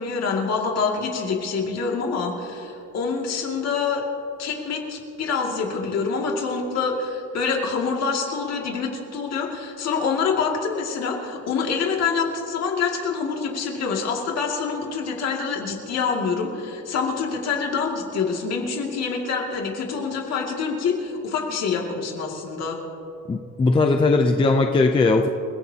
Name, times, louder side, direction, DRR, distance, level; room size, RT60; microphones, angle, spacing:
voice 1, 0.0-4.0 4.4-22.8, left 5 dB, 50° left, 0 dB, 2.4 m, -26 dB
voice 2, 23.3-25.3, left 3 dB, 15° left, 4 dB, 0.5 m, -19 dB
29.0 x 16.5 x 2.9 m, 2.8 s
cardioid pair, 175°, 34 cm